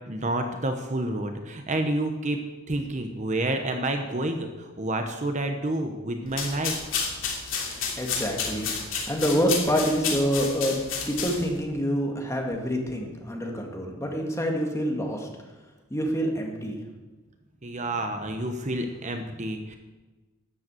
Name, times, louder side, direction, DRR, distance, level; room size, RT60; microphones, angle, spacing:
voice 1, 0.1-6.8 7.7-7.8 8.9-9.1 17.6-19.8, right 1 dB, 35° right, 6 dB, 1.0 m, -29 dB
sound 1, 6.3-11.6, left 5 dB, 70° left, 3.0 m, -31 dB
voice 2, 8.0-10.8 11.1-15.3 15.9-16.8, equal, 15° left, 1 dB, 1.9 m, -27 dB
12.5 x 8.0 x 7.7 m, 1.2 s
head